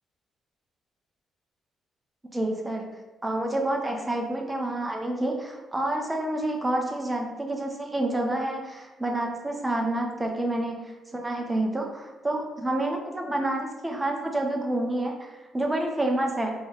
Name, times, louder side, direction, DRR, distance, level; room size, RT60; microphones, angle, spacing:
voice 1, 2.3-2.9 3.2-10.9 11.1-16.5, right 1 dB, 15° right, 1 dB, 0.7 m, -28 dB
3.3 x 3.0 x 4.0 m, 1.2 s
cardioid pair, 90°, 0 cm